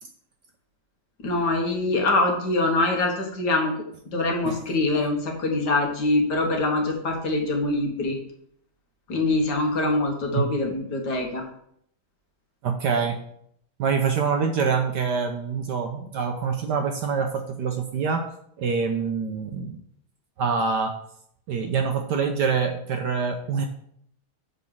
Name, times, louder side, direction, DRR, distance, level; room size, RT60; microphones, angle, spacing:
voice 1, 1.2-3.7 4.1-8.2 9.1-11.5, left 2 dB, 55° left, 2 dB, 1.8 m, -24 dB
voice 2, 12.6-13.2 13.8-19.8 20.4-20.9 21.5-23.6, right 5 dB, 65° right, 5 dB, 1.1 m, -25 dB
7.0 x 5.2 x 5.7 m, 0.69 s
omnidirectional pair, 2.3 m